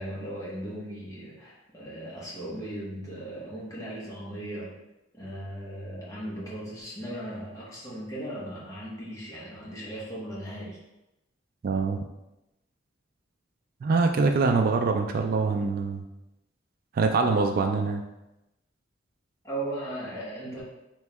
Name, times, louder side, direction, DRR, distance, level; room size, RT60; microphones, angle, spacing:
voice 1, 0.0-4.7 5.1-10.8 19.4-20.6, right 1 dB, 20° left, -7 dB, 1.2 m, -37 dB
voice 2, 11.6-12.0 13.8-16.0 16.9-18.0, right 4 dB, 50° right, 4 dB, 0.3 m, -24 dB
3.5 x 3.1 x 3.4 m, 0.95 s
head